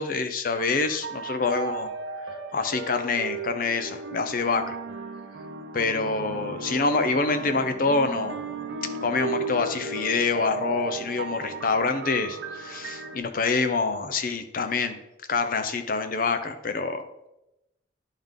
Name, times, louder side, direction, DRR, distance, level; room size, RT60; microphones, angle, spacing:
voice 1, 0.0-1.9 2.5-4.8 5.7-8.4 9.0-15.0 15.3-17.0, left 4 dB, 50° left, 8 dB, 0.6 m, -26 dB
sound 1, 0.5-13.2, right 4 dB, 85° right, 0.7 m, -35 dB
10.5 x 3.6 x 3.6 m, 0.91 s
head